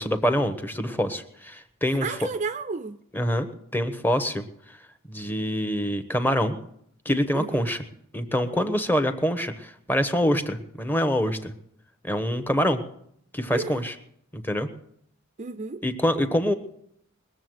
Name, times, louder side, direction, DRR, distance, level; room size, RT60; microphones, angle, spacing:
voice 1, 0.0-2.1 3.1-4.8 5.1-6.6 7.0-7.8 8.1-11.5 12.0-12.8 13.3-13.9 14.3-14.7 15.8-16.5, equal, 10° left, 1.0 m, -25 dB
voice 2, 1.9-3.0 7.3-7.7 12.7-12.8 13.5-13.8 15.4-15.8, right 4 dB, 35° right, 0.5 m, -32 dB
21.0 x 7.3 x 7.8 m
head